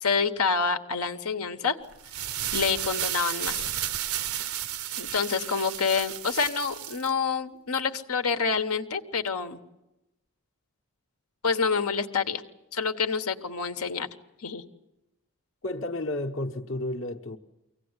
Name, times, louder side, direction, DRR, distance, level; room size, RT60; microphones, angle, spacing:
voice 1, 0.0-1.8 2.5-3.6 5.0-9.6 11.4-12.4 12.7-14.1 14.4-14.6, left 5 dB, 85° left, 1.3 m, -27 dB
sound 1, 1.9-7.1, right 11 dB, 80° right, 0.7 m, -32 dB
voice 2, 15.6-17.4, left 1 dB, 60° left, 1.1 m, -32 dB
24.0 x 17.0 x 9.7 m
head